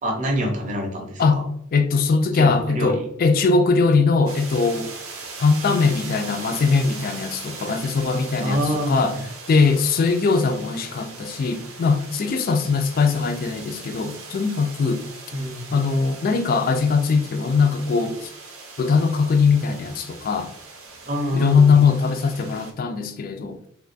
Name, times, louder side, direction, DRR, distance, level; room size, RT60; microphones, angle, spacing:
voice 1, 0.0-1.5 2.3-3.1 8.4-9.2 15.3-15.7 21.1-21.7, equal, 35° right, 0.7 m, -26 dB
voice 2, 1.7-4.9 5.4-9.2 9.5-15.0 15.7-18.3 18.8-20.5 21.3-23.7, left 4 dB, 45° left, 0.3 m, -20 dB
sound 1, 4.3-22.7, right 4 dB, 80° right, 0.7 m, -40 dB
2.9 x 2.3 x 3.9 m
head